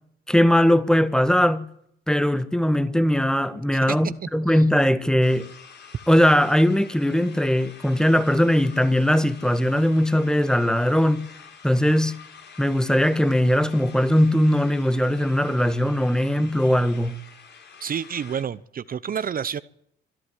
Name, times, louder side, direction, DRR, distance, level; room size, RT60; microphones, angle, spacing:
voice 1, 0.3-1.7 2.1-5.5 6.1-11.3 11.6-12.1 12.6-17.2, equal, 5° left, 1.5 m, -20 dB
sound 1, 5.2-18.4, left 6 dB, 60° left, 5.4 m, -47 dB
voice 2, 17.8-19.6, right 7 dB, 45° right, 0.8 m, -29 dB
25.5 x 11.5 x 9.8 m
cardioid pair, 90°, 20 cm